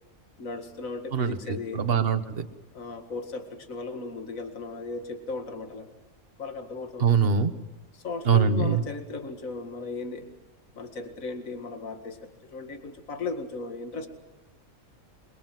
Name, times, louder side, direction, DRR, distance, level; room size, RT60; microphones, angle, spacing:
voice 1, 0.4-1.8 2.7-6.0 6.4-7.3 7.9-10.3 10.8-14.1, left 4 dB, 65° left, 6 dB, 2.4 m, -36 dB
voice 2, 1.1-2.4 7.0-7.5 8.3-8.8, right 6 dB, 45° right, 10 dB, 1.4 m, -23 dB
26.5 x 22.5 x 7.7 m, 1.0 s
omnidirectional pair, 1.5 m